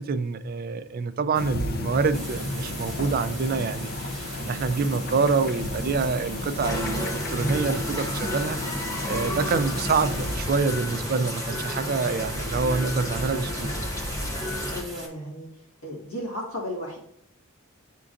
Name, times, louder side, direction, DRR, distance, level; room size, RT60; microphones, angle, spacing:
voice 1, 0.0-3.9 4.4-8.6 9.0-13.8, right 4 dB, 45° right, 0.4 m, -26 dB
sound 1, 1.3-10.4, left 1 dB, 45° left, 0.6 m, -33 dB
sound 2, 2.1-15.1, right 1 dB, ahead, 2.1 m, -40 dB
sound 3, 6.6-14.8, left 1 dB, 15° left, 0.8 m, -31 dB
voice 2, 9.1-9.6 11.6-12.1 14.7-15.5 15.8-17.0, left 1 dB, 80° left, 1.9 m, -35 dB
11.0 x 3.7 x 2.5 m
head